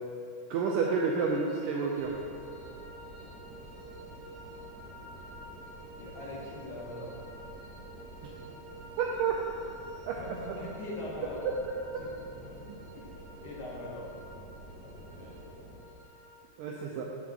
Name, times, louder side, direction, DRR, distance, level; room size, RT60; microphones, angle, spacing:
sound 1, 0.5-16.4, right 1 dB, 65° right, 2.5 m, -50 dB
voice 1, 0.5-2.2 9.0-9.4 10.1-10.2 16.6-17.0, right 5 dB, 85° right, -1 dB, 1.9 m, -29 dB
sound 2, 1.9-15.8, right 1 dB, 40° right, 2.2 m, -49 dB
voice 2, 6.0-7.1 10.1-11.6 12.0-12.6 13.0-13.1 13.4-14.1 14.8-15.4, left 1 dB, 70° left, -4 dB, 2.2 m, -42 dB
9.3 x 3.8 x 7.1 m, 2.5 s
omnidirectional pair, 4.5 m